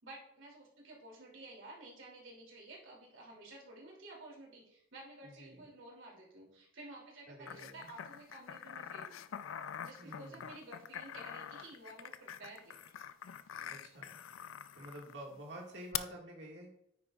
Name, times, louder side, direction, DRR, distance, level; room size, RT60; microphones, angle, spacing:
voice 1, 0.0-9.2 9.8-12.8, right 2 dB, 80° right, -2 dB, 2.7 m, -52 dB
voice 2, 5.2-5.7 7.3-7.9 10.0-10.6 13.6-14.2 14.7-16.7, right 1 dB, 60° right, -1 dB, 1.8 m, -49 dB
sound 1, 7.5-15.1 15.9-16.0, left 9 dB, 90° left, 0.4 m, -45 dB
9.4 x 8.9 x 2.4 m, 0.76 s
head